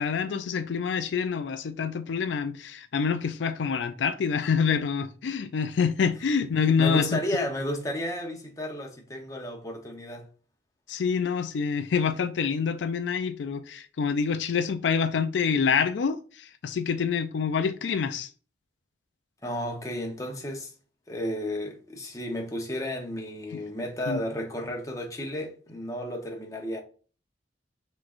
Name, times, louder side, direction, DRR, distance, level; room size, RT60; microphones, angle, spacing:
voice 1, 0.0-7.2 10.9-18.3 23.5-23.6 24.1-24.2, left 6 dB, 85° left, 0.4 m, -26 dB
voice 2, 6.8-10.2 19.4-20.7 21.1-26.8, equal, 20° left, 0.8 m, -33 dB
5.9 x 3.1 x 2.5 m
head